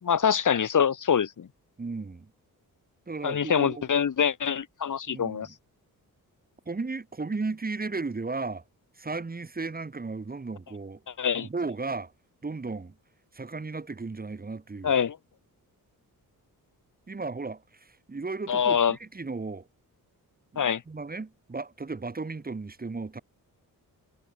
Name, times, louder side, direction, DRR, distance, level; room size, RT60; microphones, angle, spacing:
voice 1, 0.0-1.5 3.2-5.5 11.2-11.5 14.8-15.2 18.5-19.0 20.6-20.8, left 7 dB, 55° left, 4.0 m, -25 dB
voice 2, 1.8-2.3 3.1-3.8 5.1-5.5 6.7-8.6 9.0-11.0 11.4-12.1 12.4-12.9 13.3-14.9 17.1-19.7 20.5-23.2, right 3 dB, 25° right, 3.9 m, -35 dB
wide cardioid pair, 150°, 36 cm